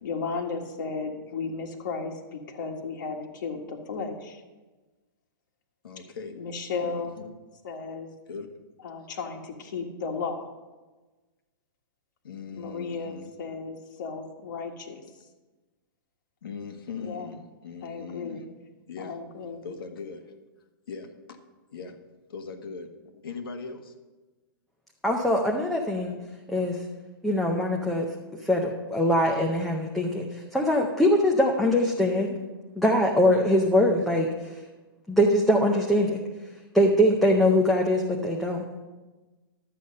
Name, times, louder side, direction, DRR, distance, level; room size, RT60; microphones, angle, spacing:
voice 1, 0.0-4.4 6.3-7.2 7.6-8.1 8.8-10.5 12.5-15.0 17.0-17.4 17.8-18.4 19.0-19.6, left 4 dB, 60° left, 2 dB, 1.7 m, -34 dB
voice 2, 5.8-6.3 6.8-7.3 8.3-8.5 12.2-13.3 16.4-18.4 18.9-19.1 19.6-20.2 20.9-21.4 21.7-21.9 22.3-22.9 23.2-23.9, left 5 dB, 85° left, 4 dB, 1.7 m, -39 dB
voice 3, 25.0-26.2 26.5-26.8 27.2-28.1 28.4-32.3 32.8-34.3 35.1-36.2 36.7-38.6, left 1 dB, ahead, -1 dB, 0.6 m, -22 dB
11.5 x 8.3 x 5.3 m, 1.2 s
hypercardioid pair, 165°, 12 cm